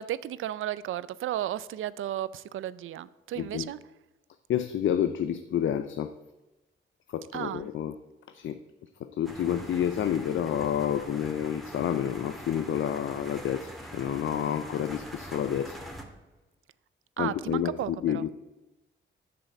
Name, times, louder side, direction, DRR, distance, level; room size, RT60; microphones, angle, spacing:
voice 1, 0.0-3.8 7.3-7.7 17.2-18.2, right 12 dB, 75° right, 0.5 m, -34 dB
voice 2, 3.4-3.7 4.5-6.1 7.1-7.9 8.3-8.6 9.0-15.8 17.2-18.3, left 9 dB, 70° left, 0.6 m, -29 dB
sound 1, 9.2-16.0, equal, ahead, 1.9 m, -43 dB
7.9 x 6.8 x 7.7 m
cardioid pair, 65°, 21 cm